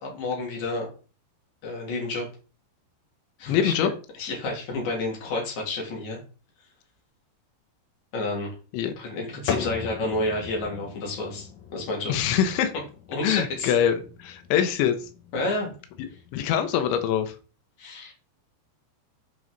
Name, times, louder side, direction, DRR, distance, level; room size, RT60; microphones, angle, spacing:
voice 1, 0.0-0.9 1.6-2.3 3.4-3.7 4.2-6.2 8.1-8.5 9.0-12.1 13.1-13.7 15.3-15.7 17.8-18.1, left 2 dB, 45° left, -2 dB, 3.7 m, -30 dB
voice 2, 3.5-3.9 8.7-8.9 12.1-12.7 13.2-15.1 16.3-17.4, left 9 dB, 90° left, 8 dB, 3.2 m, -24 dB
sound 1, 9.5-17.2, left 7 dB, 70° left, 1.8 m, -38 dB
9.2 x 5.2 x 3.8 m, 0.36 s
omnidirectional pair, 5.2 m